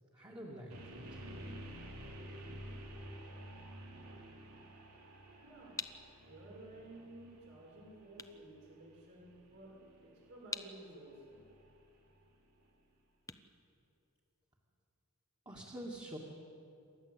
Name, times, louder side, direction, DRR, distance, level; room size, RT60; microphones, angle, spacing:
voice 1, 0.1-1.2 15.5-16.2, right 1 dB, 20° right, -2 dB, 2.2 m, -47 dB
sound 1, 0.7-12.7, right 1 dB, 85° right, 3.2 m, -51 dB
voice 2, 5.4-5.8 6.2-11.5, right 1 dB, 65° right, -3 dB, 5.8 m, -54 dB
sound 2, 5.7-14.5, left 4 dB, 15° left, 0.8 m, -50 dB
28.0 x 12.5 x 8.2 m, 2.6 s
head